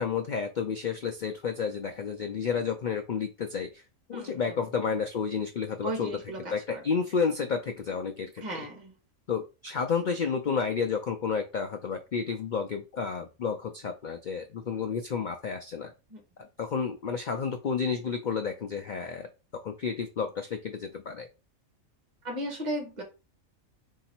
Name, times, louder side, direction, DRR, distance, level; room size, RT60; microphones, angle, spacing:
voice 1, 0.0-3.8 4.1-6.2 6.5-8.7 9.3-15.9 16.6-21.3, left 6 dB, 85° left, 0.4 m, -31 dB
voice 2, 5.8-6.8 8.4-8.9 16.1-16.2 22.2-23.0, right 1 dB, 30° right, 1.3 m, -35 dB
3.9 x 2.8 x 4.3 m
omnidirectional pair, 1.5 m